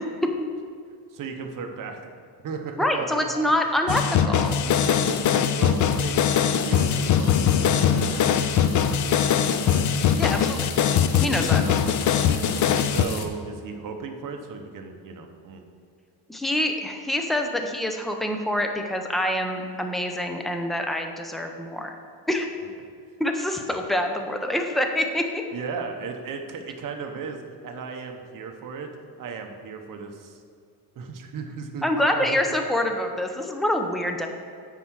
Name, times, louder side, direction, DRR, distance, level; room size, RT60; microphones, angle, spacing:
voice 1, 1.1-2.1 2.4-3.4 4.8-5.2 5.6-9.9 11.1-11.8 12.2-12.4 12.8-15.6 25.5-28.9 29.2-30.4 30.9-32.5, right 5 dB, 55° right, 4 dB, 0.9 m, -36 dB
voice 2, 2.8-4.7 10.2-10.7 11.2-11.6 16.3-21.9 22.3-22.5 23.2-25.4 31.8-34.3, left 1 dB, ahead, 4 dB, 0.6 m, -26 dB
sound 1, 3.9-13.0, left 8 dB, 50° left, 0.5 m, -21 dB
sound 2, 4.4-13.3, left 7 dB, 75° left, 1.0 m, -38 dB
9.6 x 4.6 x 6.3 m, 2.2 s
cardioid pair, 145°, 40 cm